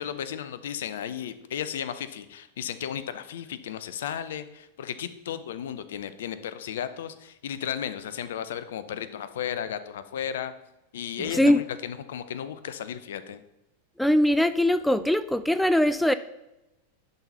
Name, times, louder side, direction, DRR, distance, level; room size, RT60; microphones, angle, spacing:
voice 1, 0.0-10.5 10.9-13.4, left 9 dB, 60° left, 13 dB, 0.6 m, -34 dB
voice 2, 11.2-11.6 14.0-16.1, left 1 dB, ahead, 13 dB, 0.3 m, -21 dB
10.5 x 4.2 x 5.4 m, 0.94 s
figure-of-eight pair, 90°, 0 cm